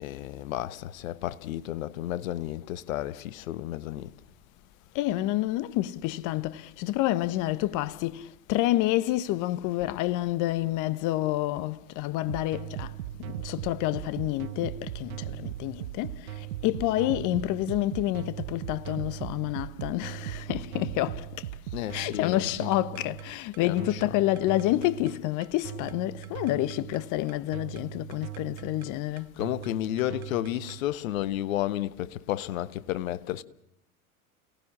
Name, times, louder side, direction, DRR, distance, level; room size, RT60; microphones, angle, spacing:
voice 1, 0.0-4.1 21.7-22.5 23.6-24.1 29.4-33.4, left 13 dB, 65° left, 1.3 m, -32 dB
voice 2, 4.9-21.5 21.9-29.3, left 15 dB, 45° left, 1.2 m, -29 dB
sound 1, 12.3-30.8, right 14 dB, 70° right, 1.3 m, -39 dB
29.5 x 18.5 x 7.3 m
hypercardioid pair, 100°, 43 cm